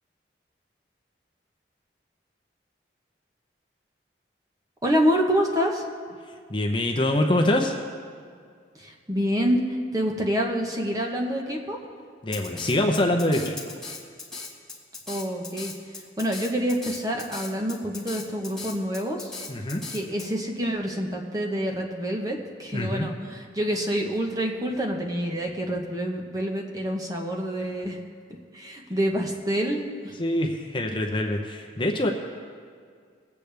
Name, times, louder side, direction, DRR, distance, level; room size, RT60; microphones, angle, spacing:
voice 1, 4.8-5.8 8.8-9.7 9.9-11.8 15.1-15.7 16.2-19.3 19.9-28.0 28.5-30.2, equal, 20° right, 1 dB, 1.1 m, -27 dB
voice 2, 6.5-7.8 12.2-13.6 19.5-19.8 22.7-23.1 30.2-32.1, left 1 dB, 25° left, 2 dB, 0.8 m, -24 dB
Drum kit, 12.3-20.3, left 3 dB, 5° left, 1.4 m, -38 dB
20.5 x 8.4 x 3.4 m, 2.1 s
head